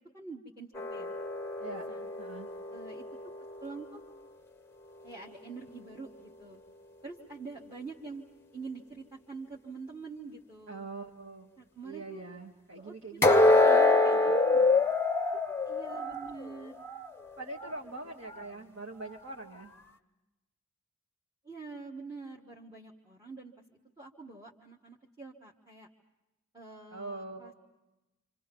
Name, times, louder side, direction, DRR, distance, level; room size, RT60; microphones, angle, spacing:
voice 1, 0.1-1.1 1.9-2.1 2.7-3.0 3.6-4.0 5.0-6.6 7.0-8.2 8.5-10.9 11.6-12.3 12.8-14.7 15.7-16.8 18.5-18.8 21.4-23.5 24.0-25.9 26.5-27.5, right 4 dB, 20° right, -1 dB, 1.4 m, -46 dB
sound 1, 0.8-3.9 13.2-17.1 17.5-17.7 18.3-18.4, left 3 dB, 10° left, 0.8 m, -26 dB
voice 2, 2.2-2.5 10.7-11.5 11.8-14.7 17.4-19.7 26.9-27.5, right 2 dB, 55° right, -1 dB, 1.9 m, -43 dB
27.5 x 26.5 x 5.4 m, 1.0 s
head